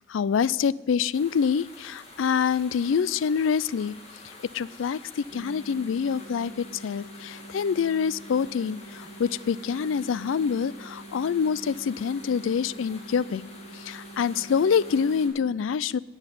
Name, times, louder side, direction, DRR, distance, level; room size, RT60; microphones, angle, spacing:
voice 1, 0.1-4.0 4.5-13.4 13.7-16.0, left 6 dB, 90° left, 21 dB, 0.4 m, -26 dB
sound 1, 1.1-15.3, left 2 dB, 35° left, 2.1 m, -48 dB
sound 2, 5.3-15.3, right 2 dB, 75° right, 4.5 m, -46 dB
10.5 x 8.0 x 9.1 m, 1.1 s
head